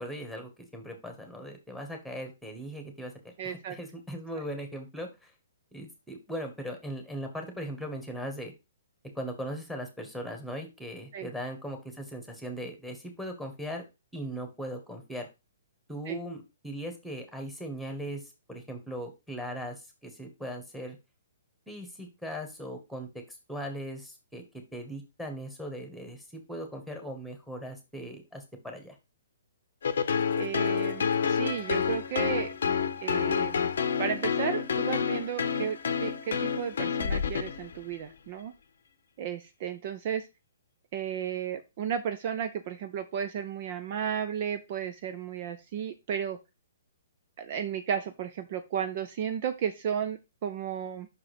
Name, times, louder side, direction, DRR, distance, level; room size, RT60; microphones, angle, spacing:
voice 1, 0.0-3.1 3.4-5.3 5.7-8.5 9.2-13.8 14.1-15.3 15.9-21.0 21.7-24.4 24.7-29.0, equal, ahead, 4 dB, 1.9 m, -39 dB
voice 2, 3.4-3.8 11.1-11.3 16.1-16.2 30.4-32.5 33.0-33.7 34.0-38.5 39.2-40.3 40.9-46.4 47.4-51.1, right 8 dB, 40° right, 8 dB, 0.7 m, -33 dB
sound 1, 29.8-38.0, left 6 dB, 60° left, 0.7 m, -29 dB
6.0 x 4.8 x 5.0 m, 0.25 s
figure-of-eight pair, 120°, 0 cm